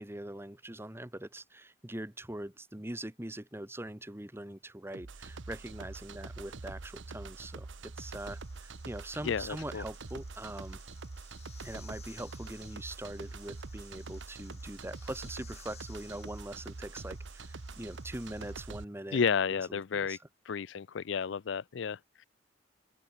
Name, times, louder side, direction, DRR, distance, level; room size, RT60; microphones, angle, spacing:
voice 1, 0.0-10.8 11.6-19.2 19.5-20.2, right 1 dB, 15° right, 1.3 m, -42 dB
sound 1, 4.9-18.8, right 3 dB, 80° right, 0.9 m, -45 dB
sound 2, 8.0-18.5, left 9 dB, 35° left, 4.9 m, -59 dB
voice 2, 9.2-9.8 19.1-20.2 20.5-22.2, left 6 dB, 75° left, 0.5 m, -32 dB
open air
head